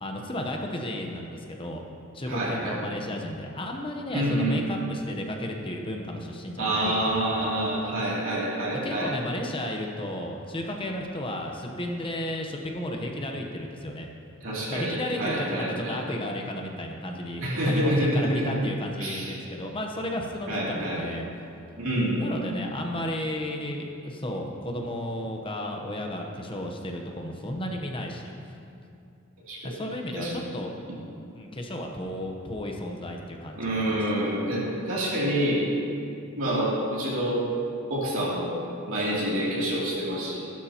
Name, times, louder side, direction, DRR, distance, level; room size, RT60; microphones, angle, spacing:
voice 1, 0.0-1.8 2.1-7.4 8.8-14.1 14.7-21.3 22.2-28.3 29.6-30.7 31.4-33.8 34.3-34.4, left 1 dB, 25° left, 2 dB, 0.9 m, -33 dB
voice 2, 2.3-2.8 4.1-4.5 6.6-9.1 14.4-16.0 17.4-18.5 19.0-19.4 20.5-21.0 21.8-22.2 29.5-29.7 30.1-30.3 33.6-35.7 36.4-37.4 37.9-40.4, right 1 dB, 65° right, -7 dB, 2.9 m, -27 dB
15.5 x 12.0 x 3.0 m, 2.5 s
head